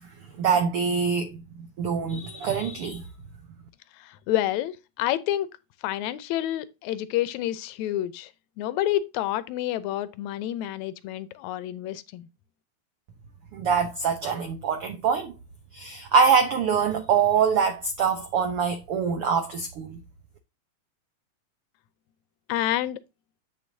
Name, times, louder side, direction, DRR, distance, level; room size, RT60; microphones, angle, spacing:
voice 1, 0.4-3.0 13.5-15.3 15.7-20.0, right 6 dB, 85° right, 1.2 m, -24 dB
voice 2, 4.0-5.5 5.8-8.3 8.6-12.3 22.5-23.0, left 13 dB, 75° left, 1.8 m, -28 dB
8.5 x 7.1 x 2.7 m
omnidirectional pair, 3.8 m